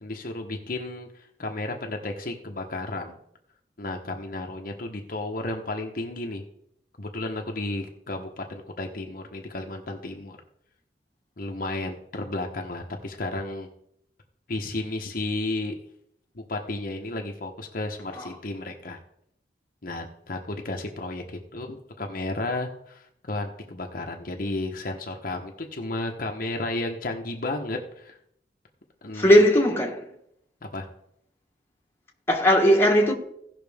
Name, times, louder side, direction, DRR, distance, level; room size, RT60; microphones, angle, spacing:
voice 1, 0.0-3.2 3.8-6.4 7.0-10.4 11.4-13.7 14.5-15.8 16.3-19.0 19.8-28.2 29.0-29.4 30.7-30.9, left 2 dB, 50° left, 1.1 m, -33 dB
voice 2, 29.1-30.0 32.3-33.1, equal, 15° left, 1.5 m, -18 dB
17.0 x 5.9 x 3.5 m
head